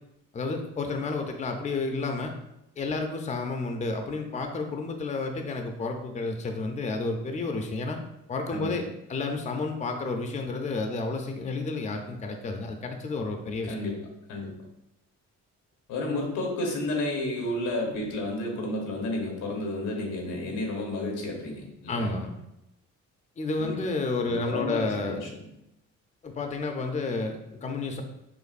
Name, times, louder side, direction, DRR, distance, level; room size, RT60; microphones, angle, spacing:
voice 1, 0.3-2.3 2.8-8.0 8.3-13.9 21.9-22.3 23.4-25.2 26.2-28.0, left 3 dB, 25° left, 4 dB, 0.5 m, -31 dB
voice 2, 13.6-13.9 14.3-14.5 15.9-22.2 23.6-23.8 24.3-25.5, left 2 dB, 85° left, 0 dB, 1.2 m, -31 dB
6.5 x 2.5 x 2.5 m, 0.86 s
cardioid pair, 90°, 30 cm